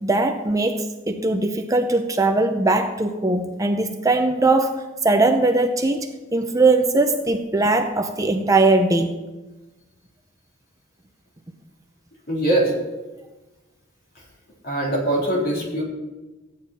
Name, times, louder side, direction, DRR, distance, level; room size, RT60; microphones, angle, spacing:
voice 1, 0.0-9.1, right 2 dB, 15° right, 5 dB, 0.6 m, -20 dB
voice 2, 12.3-12.7 14.6-15.8, right 1 dB, 50° left, -4 dB, 3.7 m, -22 dB
14.5 x 9.3 x 4.2 m, 1.1 s
head